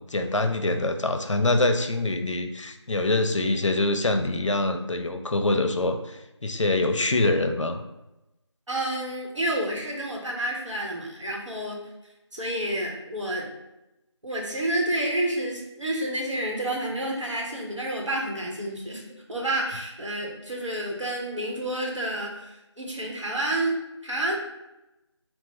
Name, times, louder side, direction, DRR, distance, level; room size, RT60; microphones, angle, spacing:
voice 1, 0.1-7.8, left 2 dB, 85° left, 7 dB, 0.5 m, -25 dB
voice 2, 8.7-11.8 12.3-13.5 14.2-19.0 19.3-23.7 24.0-24.4, right 1 dB, 80° right, -2 dB, 1.3 m, -29 dB
3.7 x 2.3 x 4.1 m, 0.96 s
figure-of-eight pair, 170°, 15 cm